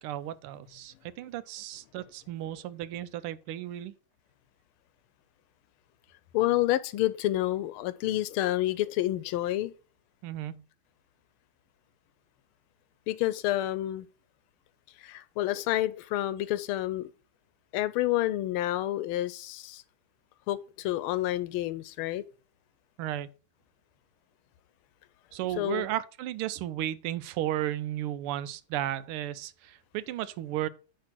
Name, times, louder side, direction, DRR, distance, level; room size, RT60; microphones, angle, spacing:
voice 1, 0.0-3.9 10.2-10.6 23.0-23.3 25.3-30.7, right 13 dB, 90° right, 1.5 m, -34 dB
voice 2, 6.3-9.7 13.1-14.1 15.0-17.1 17.7-19.8 20.5-22.2 25.6-25.9, left 15 dB, 80° left, 1.4 m, -29 dB
9.8 x 3.5 x 5.9 m
omnidirectional pair, 2.3 m